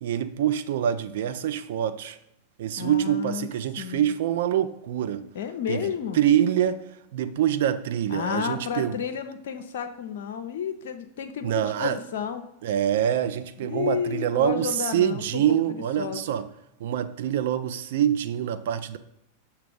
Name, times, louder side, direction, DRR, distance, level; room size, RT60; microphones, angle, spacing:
voice 1, 0.0-2.2 2.6-5.2 5.7-5.8 6.1-6.8 7.1-9.0 11.4-12.0 12.6-16.4 16.8-19.0, right 10 dB, 55° right, 0.4 m, -25 dB
voice 2, 2.8-3.5 3.8-4.1 5.3-6.2 8.1-12.5 13.6-16.2, left 7 dB, 55° left, 0.4 m, -32 dB
6.7 x 2.9 x 5.0 m
figure-of-eight pair, 90°, 0 cm